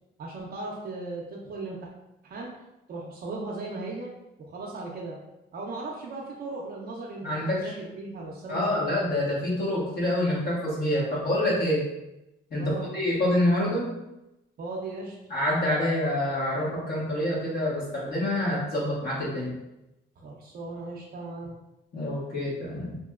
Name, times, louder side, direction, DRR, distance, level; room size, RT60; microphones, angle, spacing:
voice 1, 0.2-1.9 2.2-2.5 2.9-4.1 4.4-5.2 5.5-8.8 12.5-12.9 14.6-15.2 20.2-21.6, right 2 dB, 50° right, -2 dB, 0.5 m, -37 dB
voice 2, 7.2-7.7 8.5-11.9 12.5-13.9 15.3-19.6 21.9-23.0, left 1 dB, 50° left, -5 dB, 1.3 m, -27 dB
2.9 x 2.9 x 2.3 m, 0.92 s
cardioid pair, 90°, 20 cm